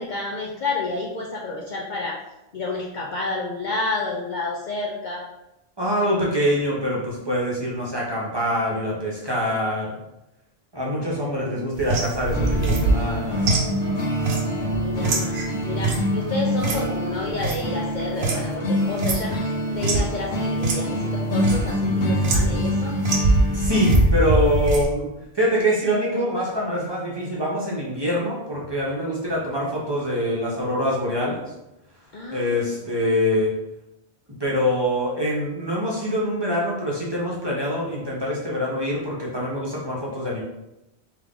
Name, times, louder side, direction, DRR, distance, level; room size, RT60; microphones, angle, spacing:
voice 1, 0.0-2.2 2.5-5.3 14.6-23.0 32.1-32.9, left 3 dB, 55° left, -2 dB, 0.6 m, -30 dB
voice 2, 5.8-9.9 10.7-13.6 23.5-25.1 25.3-31.4 32.3-33.5 34.4-40.4, equal, 25° right, -5 dB, 0.9 m, -24 dB
sound 1, 11.8-18.5 18.8-20.1 20.6-20.8 21.1-21.7 22.2-22.7 23.0-24.9, right 2 dB, 70° right, 1.0 m, -24 dB
sound 2, 12.3-24.0, equal, 90° left, 1.2 m, -26 dB
3.6 x 3.1 x 3.6 m, 0.90 s
omnidirectional pair, 1.1 m